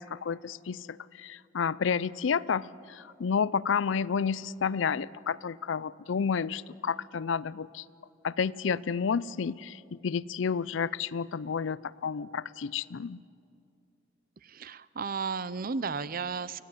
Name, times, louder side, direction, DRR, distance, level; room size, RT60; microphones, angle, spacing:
voice 1, 0.0-7.8 8.2-13.2, left 6 dB, 70° left, 19 dB, 0.5 m, -31 dB
voice 2, 14.4-16.6, right 5 dB, 45° right, 17 dB, 0.6 m, -34 dB
24.5 x 16.0 x 9.6 m, 2.5 s
head